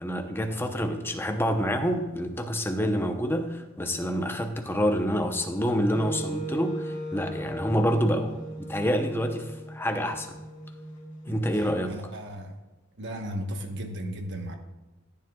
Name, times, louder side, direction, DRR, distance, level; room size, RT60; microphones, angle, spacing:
voice 1, 0.0-10.4 11.3-12.0, equal, 10° left, 5 dB, 0.8 m, -27 dB
Wind instrument woodwind instrument, 5.9-11.9, right 1 dB, 35° left, 2.0 m, -38 dB
voice 2, 11.9-12.6 13.0-14.6, equal, 55° right, 4 dB, 1.2 m, -35 dB
14.5 x 9.5 x 2.4 m, 1.2 s
head